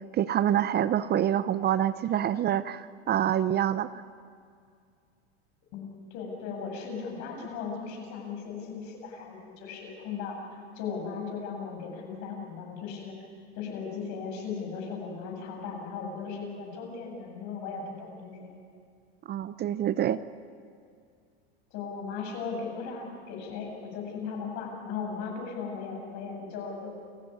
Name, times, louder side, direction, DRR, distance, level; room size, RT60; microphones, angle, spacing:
voice 1, 0.1-3.9 19.3-20.2, right 11 dB, 30° right, 15 dB, 0.7 m, -26 dB
voice 2, 6.1-13.2 13.6-18.5 21.7-27.0, left 5 dB, 55° left, 1 dB, 7.9 m, -37 dB
28.5 x 15.5 x 9.8 m, 2.2 s
supercardioid pair, 115°, 33 cm